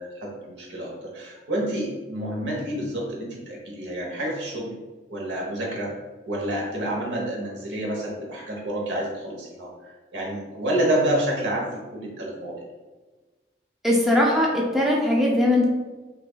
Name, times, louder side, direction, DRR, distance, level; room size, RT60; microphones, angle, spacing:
voice 1, 0.0-4.7 5.1-5.9 6.3-9.7 10.1-12.6, right 1 dB, 90° right, -2 dB, 1.1 m, -28 dB
voice 2, 13.8-15.7, left 1 dB, ahead, -3 dB, 0.5 m, -20 dB
5.8 x 2.5 x 2.4 m, 1.3 s
head